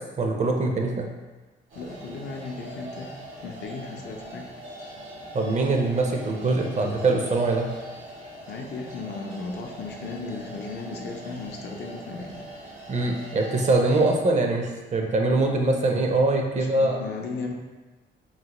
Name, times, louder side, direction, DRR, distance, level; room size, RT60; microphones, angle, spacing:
voice 1, 0.2-1.1 5.3-7.7 12.9-17.0, right 2 dB, 35° right, 2 dB, 0.5 m, -23 dB
voice 2, 1.7-3.1 3.4-4.4 8.5-12.4 16.5-17.5, left 3 dB, 60° left, 1 dB, 0.5 m, -36 dB
sound 1, 1.7-14.1, right 1 dB, 90° right, 0.8 m, -42 dB
3.9 x 2.0 x 2.9 m, 1.2 s
cardioid pair, 90°, 20 cm